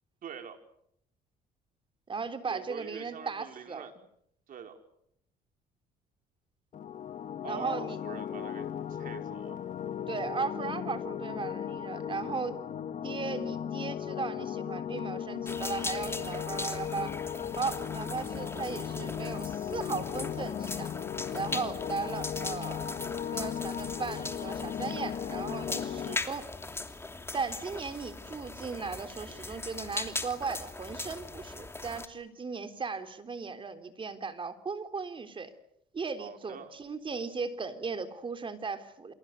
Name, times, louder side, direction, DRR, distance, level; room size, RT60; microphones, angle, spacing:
voice 1, 0.2-0.6 2.5-3.9 4.5-4.8 7.4-9.6 26.1-26.3 36.2-36.7, right 7 dB, 55° right, 6 dB, 5.2 m, -44 dB
voice 2, 2.1-3.9 7.5-8.0 10.1-12.6 13.0-17.2 17.6-20.9 21.3-23.1 23.3-26.5 27.3-35.5 35.9-39.1, right 5 dB, 30° right, 9 dB, 3.5 m, -37 dB
sound 1, 6.7-26.2, left 9 dB, 50° left, 1.7 m, -36 dB
sound 2, 15.5-32.1, left 2 dB, 15° left, 2.8 m, -40 dB
28.0 x 28.0 x 6.6 m, 0.72 s
cardioid pair, 110°, 17 cm